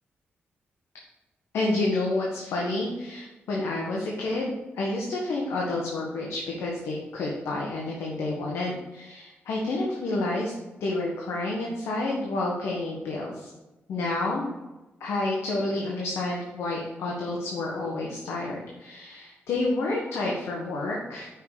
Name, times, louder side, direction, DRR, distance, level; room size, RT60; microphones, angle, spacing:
voice 1, 1.5-10.5 10.8-13.5 13.9-14.4 15.0-21.3, left 2 dB, 90° left, -3 dB, 1.5 m, -29 dB
6.5 x 4.9 x 6.6 m, 1.1 s
cardioid pair, 80°, 4 cm